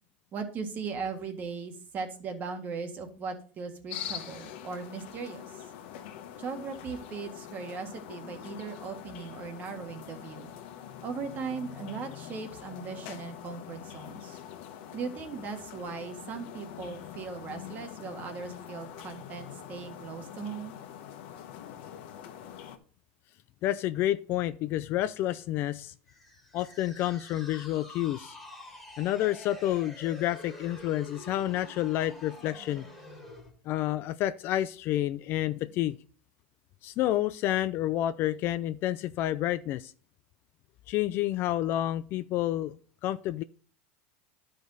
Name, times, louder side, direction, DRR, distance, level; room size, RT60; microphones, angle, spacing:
voice 1, 0.3-5.5 6.4-10.5 11.0-14.4 14.9-20.7, right 5 dB, 30° right, 1.6 m, -38 dB
sound 1, 3.9-22.8, left 10 dB, 65° left, 1.2 m, -44 dB
voice 2, 23.6-25.9 26.5-28.4 29.0-32.8 33.7-36.0 36.8-39.9 40.9-42.8 43.0-43.4, left 13 dB, 40° left, 0.4 m, -29 dB
sound 2, 26.1-33.5, left 1 dB, 5° left, 1.8 m, -48 dB
11.5 x 5.1 x 4.0 m
supercardioid pair, 150°, 6 cm